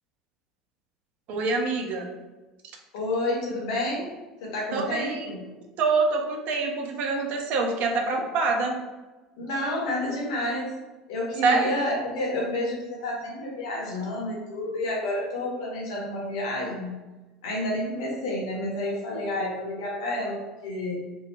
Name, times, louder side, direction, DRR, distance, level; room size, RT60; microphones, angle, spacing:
voice 1, 1.3-2.1 4.7-5.3 5.8-8.8 11.4-11.7, right 3 dB, 50° right, 2 dB, 0.4 m, -25 dB
voice 2, 2.9-4.1 4.4-5.4 9.4-10.7 11.1-16.9 17.4-21.0, left 1 dB, 60° left, -3 dB, 0.8 m, -30 dB
2.1 x 2.0 x 3.0 m, 1.2 s
figure-of-eight pair, 70°, 3 cm